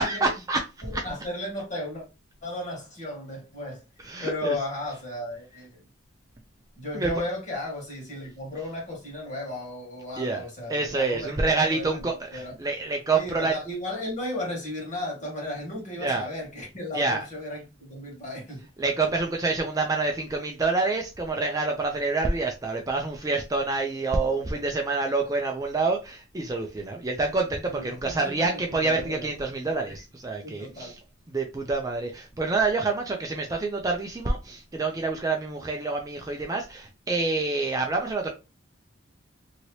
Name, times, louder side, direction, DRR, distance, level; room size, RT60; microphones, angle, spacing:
voice 1, 0.0-1.0 4.0-4.6 6.9-7.1 10.2-13.6 16.0-16.3 16.9-17.2 18.8-31.0 31.3-38.3, right 3 dB, 15° right, 0.3 m, -27 dB
voice 2, 0.8-2.0 2.4-3.8 4.2-5.8 6.8-12.5 13.1-18.6 24.5-24.6 27.6-29.3 29.9-30.0 30.4-30.9, left 1 dB, 35° left, 1.5 m, -35 dB
2.8 x 2.8 x 3.0 m
head